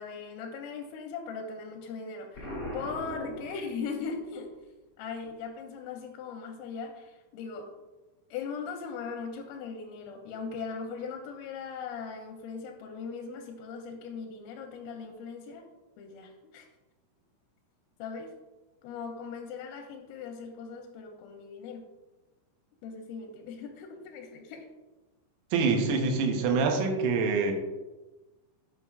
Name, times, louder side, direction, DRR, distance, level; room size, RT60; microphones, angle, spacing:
voice 1, 0.0-4.5 5.0-7.7 8.3-15.6 16.0-16.7 18.0-18.3 18.8-21.8 22.8-24.7, left 5 dB, 85° left, 1 dB, 3.2 m, -39 dB
Explosion, 2.3-4.2, equal, 50° left, 0.8 m, -39 dB
voice 2, 25.5-27.5, right 4 dB, 85° right, 4 dB, 3.5 m, -25 dB
8.9 x 5.8 x 2.4 m, 1.2 s
omnidirectional pair, 5.7 m